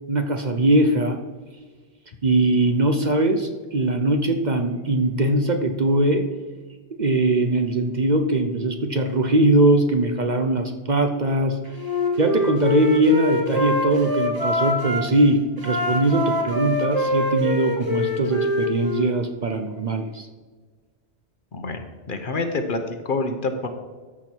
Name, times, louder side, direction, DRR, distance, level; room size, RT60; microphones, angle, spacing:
voice 1, 0.1-1.2 2.2-6.3 7.0-11.6 12.2-20.3, right 2 dB, 45° right, 5 dB, 0.8 m, -21 dB
Wind instrument woodwind instrument, 11.7-15.0 15.6-19.1, left 1 dB, 20° right, 1.4 m, -24 dB
voice 2, 21.5-23.7, left 3 dB, 50° left, 6 dB, 1.0 m, -27 dB
13.5 x 6.0 x 4.5 m, 1.4 s
omnidirectional pair, 1.2 m